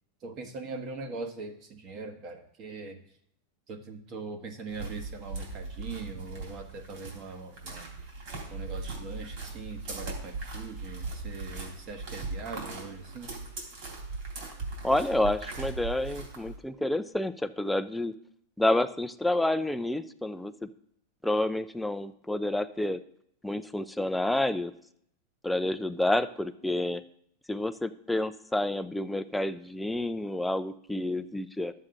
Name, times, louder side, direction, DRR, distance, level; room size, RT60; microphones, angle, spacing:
voice 1, 0.2-3.0 3.7-8.0 8.5-13.3, right 4 dB, 35° right, 5 dB, 1.3 m, -41 dB
sound 1, 4.7-16.6, right 3 dB, 50° right, 3.2 m, -39 dB
voice 2, 14.8-18.1 18.6-20.7 21.2-23.0 23.4-24.7 25.4-27.0 27.5-31.7, left 1 dB, 5° left, 10 dB, 0.4 m, -29 dB
12.5 x 7.4 x 3.8 m, 0.69 s
supercardioid pair, 150°, 0 cm